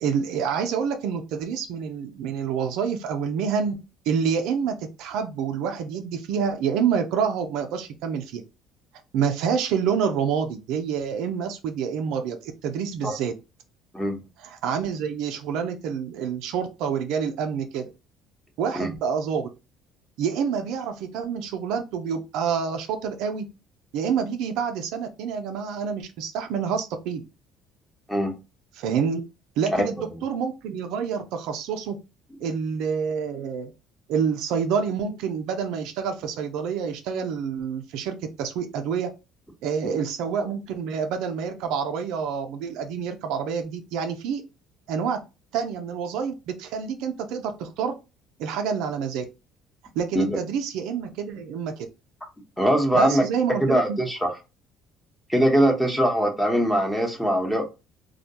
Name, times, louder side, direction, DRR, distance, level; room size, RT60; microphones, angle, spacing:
voice 1, 0.0-3.8 4.1-8.4 9.1-13.3 14.4-17.9 18.6-19.5 20.2-23.5 23.9-27.2 28.8-29.2 29.6-32.0 32.4-33.7 34.1-39.1 39.6-44.4 44.9-45.2 45.5-47.9 48.4-49.2 49.9-51.9 52.9-54.0, right 7 dB, 75° right, 6 dB, 0.4 m, -27 dB
voice 2, 52.6-53.2 53.6-54.4 55.3-57.6, equal, 5° left, 2 dB, 0.9 m, -22 dB
2.2 x 2.1 x 2.8 m, 0.27 s
supercardioid pair, 90°, 0 cm